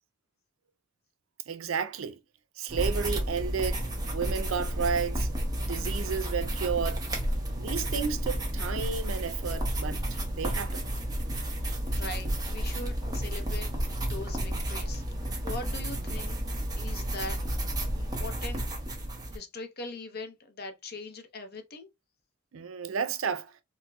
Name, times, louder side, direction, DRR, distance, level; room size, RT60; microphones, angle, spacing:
voice 1, 1.5-2.2 2.6-5.3 5.6-7.0 7.6-10.0 10.3-10.9 22.5-23.5, right 6 dB, 85° right, 0.5 m, -32 dB
sound 1, 2.7-19.4, right 1 dB, 20° right, 0.9 m, -31 dB
voice 2, 11.4-15.0 15.4-16.4 16.8-17.4 17.9-18.6 19.3-21.9, left 3 dB, 50° left, 0.7 m, -41 dB
4.5 x 2.1 x 2.3 m
head